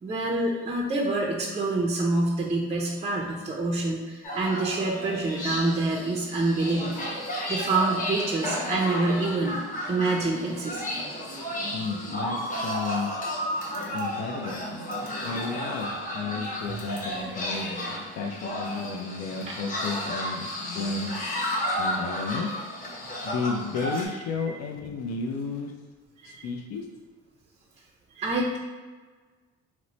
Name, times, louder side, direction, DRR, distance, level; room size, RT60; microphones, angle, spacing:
voice 1, 0.0-9.6 9.9-10.8 16.7-16.8 19.5-19.6 24.5-24.6 26.2-26.5 28.2-28.6, right 2 dB, 20° right, -2 dB, 0.5 m, -27 dB
sound 1, 4.2-24.1, equal, 25° left, 1.0 m, -32 dB
voice 2, 11.7-12.4 12.6-13.1 13.9-14.6 15.2-20.5 20.7-21.1 21.8-22.5 23.2-25.7 26.2-26.8, left 4 dB, 60° left, 3 dB, 0.5 m, -32 dB
3.0 x 2.0 x 3.9 m, 1.4 s
cardioid pair, 90°, 30 cm